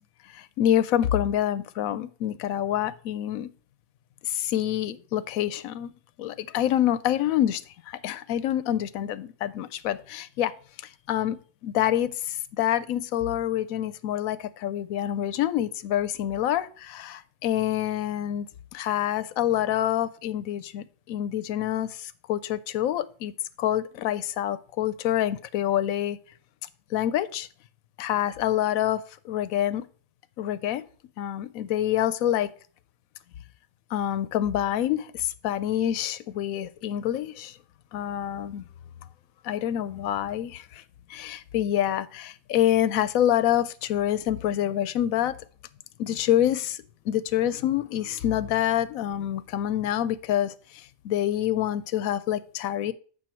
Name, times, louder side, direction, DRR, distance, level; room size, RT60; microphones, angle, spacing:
voice 1, 0.3-3.5 4.2-5.9 6.2-10.5 11.1-11.4 11.6-18.5 18.7-23.3 23.6-26.2 26.9-27.5 28.0-29.8 30.4-30.8 31.2-32.5 33.9-37.6 37.9-38.7 39.4-40.8 41.1-45.4 46.0-52.9, left 11 dB, 80° left, 1.0 m, -27 dB
7.6 x 6.1 x 4.4 m
omnidirectional pair, 1.5 m